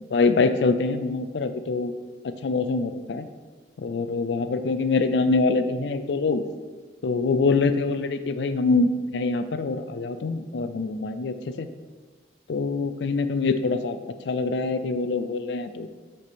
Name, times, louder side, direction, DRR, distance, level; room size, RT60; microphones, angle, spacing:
voice 1, 0.1-1.9 2.4-3.3 3.8-6.4 7.0-11.7 12.5-14.0 14.3-15.9, left 3 dB, 75° left, 10 dB, 0.4 m, -24 dB
8.0 x 4.2 x 3.5 m, 1.4 s
head